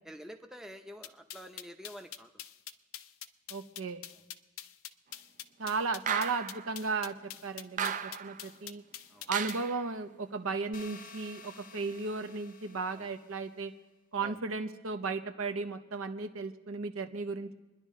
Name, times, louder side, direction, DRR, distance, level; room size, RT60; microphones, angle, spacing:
voice 1, 0.0-2.3 9.1-9.3 12.9-13.1 14.2-14.4, equal, 5° right, 4 dB, 0.7 m, -48 dB
sound 1, 1.0-9.7, left 12 dB, 70° left, 0.5 m, -45 dB
voice 2, 3.5-4.0 5.6-8.8 9.3-13.7 14.1-17.5, right 4 dB, 70° right, 8 dB, 0.8 m, -35 dB
sound 2, 6.1-6.7 7.8-8.4 9.3-9.8, right 8 dB, 40° right, 0.4 m, -35 dB
sound 3, 10.7-13.6, left 4 dB, 45° left, 0.8 m, -52 dB
26.0 x 10.5 x 3.7 m, 1.1 s
head